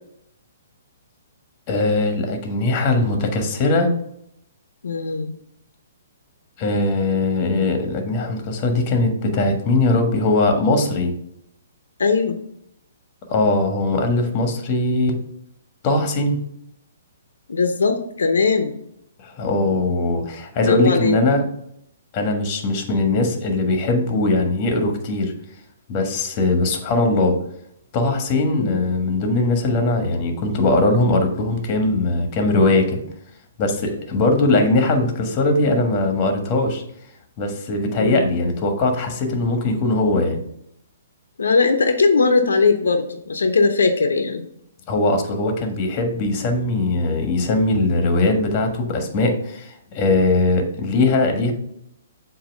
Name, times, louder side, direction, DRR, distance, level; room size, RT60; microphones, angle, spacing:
voice 1, 1.7-3.9 6.6-11.1 13.3-15.1 15.8-16.4 19.2-21.4 22.1-25.3 25.9-27.4 27.9-33.0 33.6-36.8 37.4-40.4 44.9-51.5, left 2 dB, 30° left, 5 dB, 1.3 m, -20 dB
voice 2, 4.8-5.3 12.0-12.4 17.5-18.7 20.6-21.2 28.6-28.9 38.0-38.3 41.4-44.4, left 4 dB, 85° left, 7 dB, 0.7 m, -19 dB
7.4 x 2.8 x 5.2 m, 0.74 s
hypercardioid pair, 145°, 0 cm